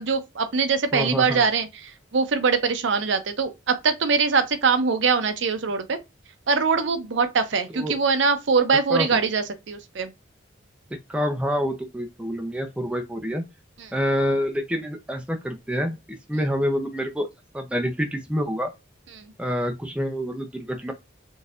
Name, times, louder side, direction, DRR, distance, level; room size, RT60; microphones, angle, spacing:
voice 1, 0.0-6.0 6.5-10.1 19.2-19.3, right 5 dB, 70° right, 0.6 m, -23 dB
voice 2, 0.9-1.4 7.7-8.0 8.9-9.2 11.1-13.4 13.9-17.3 17.5-18.7 19.4-20.9, equal, 5° right, 0.5 m, -27 dB
3.9 x 2.6 x 2.4 m
head